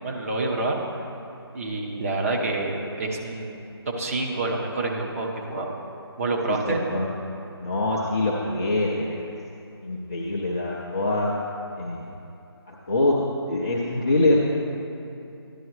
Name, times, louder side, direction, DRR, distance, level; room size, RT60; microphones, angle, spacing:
voice 1, 0.0-0.8 1.5-3.6 3.9-5.7 6.2-6.8, right 2 dB, 35° right, -1 dB, 1.1 m, -27 dB
voice 2, 6.5-7.1 7.6-9.3 9.8-11.3 11.8-12.0 12.7-13.2 13.5-14.4, left 2 dB, 10° left, -6 dB, 0.3 m, -24 dB
12.5 x 10.5 x 3.2 m, 2.7 s
figure-of-eight pair, 155°, 14 cm